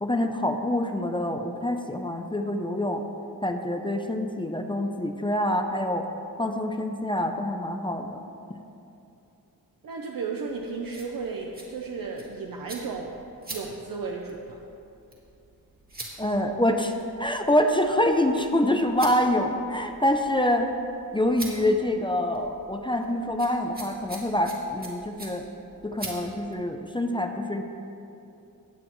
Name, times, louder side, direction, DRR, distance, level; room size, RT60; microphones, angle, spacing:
voice 1, 0.0-3.0 3.4-6.1 6.4-8.2 8.5-8.6 16.2-20.7 21.1-25.4 25.8-27.6, left 1 dB, 15° left, 5 dB, 0.5 m, -26 dB
voice 2, 9.8-13.2 13.5-14.6, right 4 dB, 60° right, 0 dB, 0.8 m, -34 dB
sound 1, 10.5-26.6, right 2 dB, 25° right, 1.9 m, -45 dB
16.5 x 9.2 x 3.1 m, 2.7 s
wide cardioid pair, 140°, 38 cm